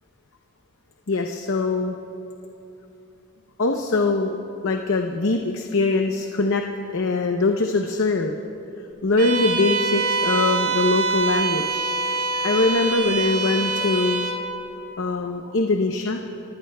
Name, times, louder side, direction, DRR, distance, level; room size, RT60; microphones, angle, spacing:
voice 1, 1.1-1.9 3.6-4.4 4.6-6.6 6.9-8.3 9.0-12.2 12.4-14.3 15.0-16.2, left 3 dB, 60° left, 3 dB, 0.7 m, -22 dB
Bowed string instrument, 9.2-14.5, right 3 dB, 80° right, 2.4 m, -25 dB
28.5 x 15.5 x 2.3 m, 2.9 s
head